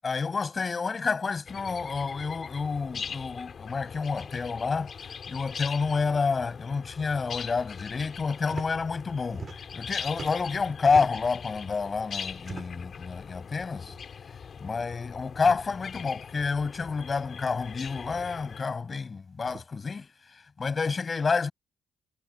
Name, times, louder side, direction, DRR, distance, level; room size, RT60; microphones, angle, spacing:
voice 1, 0.0-9.5 9.7-14.0 14.3-14.4 14.6-21.5, left 4 dB, 35° left, 6.7 m, -29 dB
sound 1, 1.5-18.6, left 6 dB, 50° left, 5.6 m, -41 dB
sound 2, 8.4-8.7 9.0-9.8 10.1-11.4 12.4-12.9 13.8-14.0 14.3-14.4 15.3-15.6 16.8-16.9 18.0-18.3 19.4-19.7, right 5 dB, 40° right, 7.1 m, -42 dB
cardioid pair, 90°, 0 cm